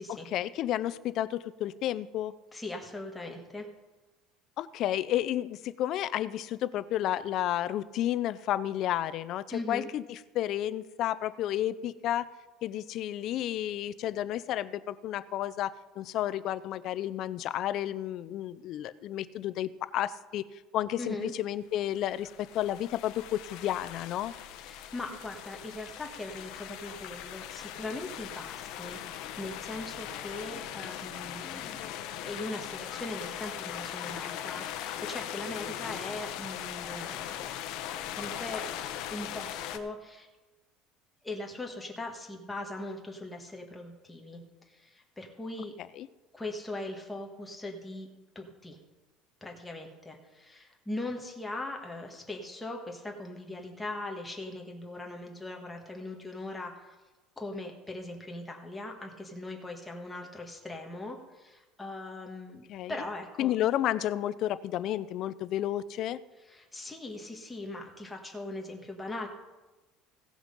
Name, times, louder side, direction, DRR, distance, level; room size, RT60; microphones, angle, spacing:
voice 1, 0.1-2.3 4.6-12.3 12.6-20.4 20.7-24.3 46.0-46.1 62.7-62.9 63.4-66.2, left 12 dB, 45° left, 16 dB, 0.5 m, -31 dB
voice 2, 2.5-3.6 9.5-9.9 21.0-21.3 24.6-37.4 37.8-40.3 41.2-44.4 44.7-45.7 46.3-48.1 48.3-48.8 49.4-57.0 57.4-63.5 66.5-69.3, left 2 dB, 10° left, 1 dB, 1.6 m, -40 dB
sound 1, 21.8-39.8, left 11 dB, 60° left, 0.9 m, -40 dB
16.5 x 6.2 x 5.3 m, 1.2 s
cardioid pair, 155°, 0 cm